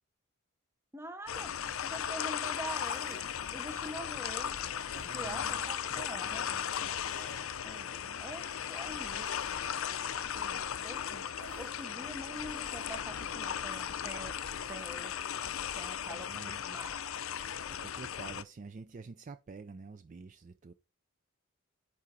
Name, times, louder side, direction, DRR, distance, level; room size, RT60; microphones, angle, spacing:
voice 1, 0.9-3.2 3.5-4.6 5.1-6.5 7.6-15.2 15.8-16.3 16.6-17.1, right 1 dB, 10° right, 0.7 m, -45 dB
sound 1, 1.3-18.4, left 8 dB, 70° left, 0.5 m, -37 dB
sound 2, 2.9-3.9 4.9-5.7 7.1-7.9 9.2-9.8 11.4-12.3, right 2 dB, 75° right, 2.9 m, -54 dB
voice 2, 4.9-5.6 5.9-7.0 16.1-16.6 17.7-20.7, right 4 dB, 35° right, 0.3 m, -49 dB
8.5 x 4.8 x 3.8 m
head